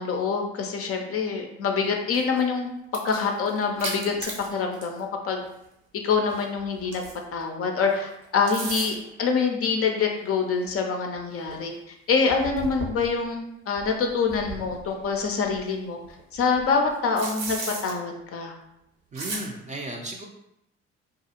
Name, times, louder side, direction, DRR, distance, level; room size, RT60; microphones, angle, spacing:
voice 1, 0.0-5.4 5.9-7.0 7.3-11.7 12.1-16.0 16.3-18.5, left 5 dB, 40° left, 3 dB, 0.5 m, -26 dB
sound 1, 2.1-2.4 2.8-5.0 5.3-5.5 6.3-7.4 8.2-9.1 10.1-10.2 10.7-10.8 11.2-11.3 11.5-11.6 12.3-13.3 13.8-15.6 16.0-17.9 19.1-19.5, right 3 dB, 70° right, 0.8 m, -36 dB
voice 2, 19.1-20.2, right 1 dB, 20° right, 1 dB, 0.4 m, -35 dB
2.4 x 2.3 x 2.8 m, 0.82 s
hypercardioid pair, 50°, 35 cm